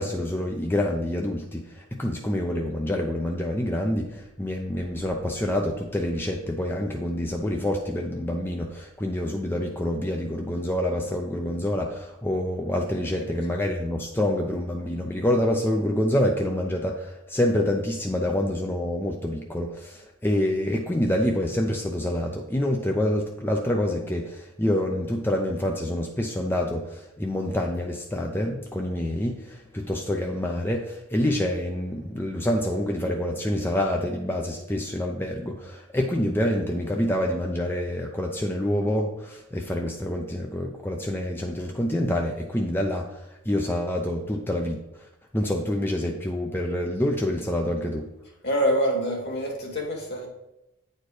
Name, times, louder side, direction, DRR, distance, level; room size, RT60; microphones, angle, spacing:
voice 1, 0.0-43.2 43.5-44.8 45.3-48.1, left 1 dB, 10° left, 1 dB, 0.5 m, -27 dB
voice 2, 48.4-50.3, equal, 55° left, 0 dB, 2.0 m, -25 dB
9.2 x 4.4 x 4.9 m, 0.91 s
head